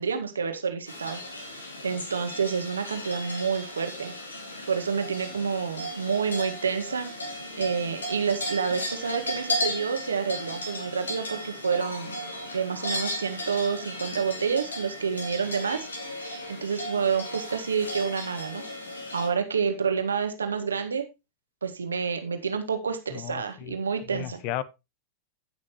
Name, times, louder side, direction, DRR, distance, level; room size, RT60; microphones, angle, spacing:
voice 1, 0.0-4.1 4.7-12.2 12.5-18.6 19.1-21.0 21.6-24.4, right 6 dB, 75° right, 1.6 m, -29 dB
sound 1, 0.9-19.3, left 1 dB, 75° left, 2.5 m, -35 dB
voice 2, 23.1-23.7 24.1-24.6, left 12 dB, 45° left, 0.8 m, -34 dB
15.5 x 6.2 x 3.0 m
figure-of-eight pair, 90°, 0 cm